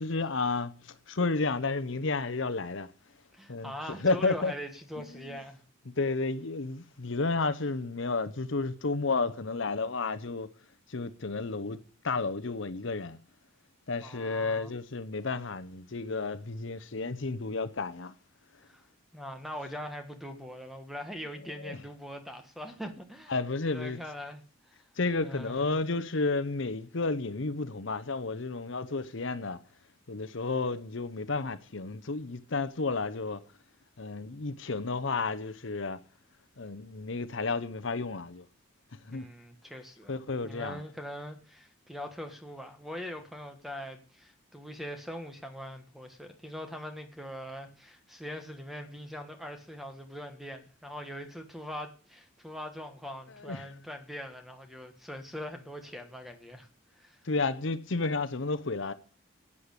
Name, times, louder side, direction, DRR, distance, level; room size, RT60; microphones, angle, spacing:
voice 1, 0.0-2.9 3.5-3.7 4.0-4.5 5.0-5.4 6.0-10.5 10.9-13.2 13.9-18.1 21.6-21.8 23.3-24.0 25.0-29.6 30.1-33.4 34.0-36.0 36.6-38.4 39.0-39.3 40.1-40.8 53.3-53.8 57.2-58.9, left 3 dB, 65° left, 0.8 m, -32 dB
voice 2, 3.3-5.6 14.0-14.7 18.7-18.8 19.1-23.3 23.7-24.4 24.7-24.8 25.2-25.7 39.1-40.1 40.4-56.7 57.0-57.2, equal, ahead, 1.4 m, -42 dB
11.0 x 8.6 x 8.1 m
head